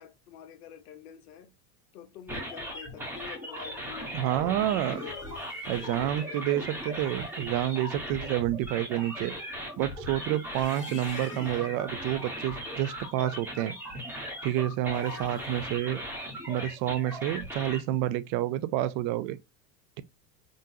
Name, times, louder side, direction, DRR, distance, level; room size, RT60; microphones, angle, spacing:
voice 1, 0.0-1.5 1.9-5.2 5.7-6.7 8.2-8.3, left 9 dB, 65° left, 0.9 m, -47 dB
sound 1, 2.3-17.8, equal, 5° right, 1.4 m, -38 dB
voice 2, 4.1-5.0 5.7-9.3 9.8-13.8 14.4-16.0 16.5-19.4, right 13 dB, 45° right, 0.5 m, -29 dB
sound 2, 4.8-7.6 10.3-11.8 14.8-15.7, left 9 dB, 30° left, 0.6 m, -49 dB
3.8 x 2.6 x 2.7 m
hypercardioid pair, 95°, 48 cm